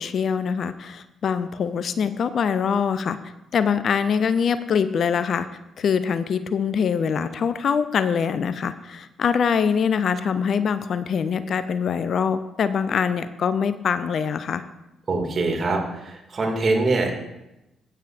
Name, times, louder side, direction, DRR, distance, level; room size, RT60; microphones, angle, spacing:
voice 1, 0.0-3.2 3.5-5.5 5.8-14.6, left 6 dB, 55° left, 13 dB, 0.5 m, -23 dB
voice 2, 15.1-17.1, right 3 dB, 45° right, 1 dB, 2.2 m, -23 dB
15.0 x 9.0 x 2.5 m, 0.93 s
figure-of-eight pair, 40°, 0 cm